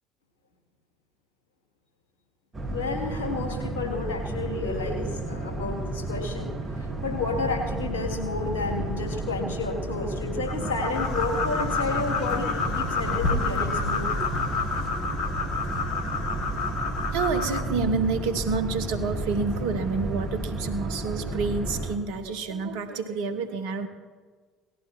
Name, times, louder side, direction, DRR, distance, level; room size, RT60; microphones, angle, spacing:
Boat Water vehicle, 2.5-22.0, right 2 dB, 30° right, 2.7 m, -32 dB
voice 1, 2.7-6.5 6.8-14.3, left 3 dB, 75° left, 2 dB, 2.9 m, -31 dB
sound 1, 10.5-17.6, left 5 dB, 60° left, 1.7 m, -29 dB
voice 2, 17.1-23.9, right 4 dB, 70° right, 8 dB, 1.3 m, -28 dB
18.5 x 14.0 x 4.5 m, 1.5 s
hypercardioid pair, 60°, 0 cm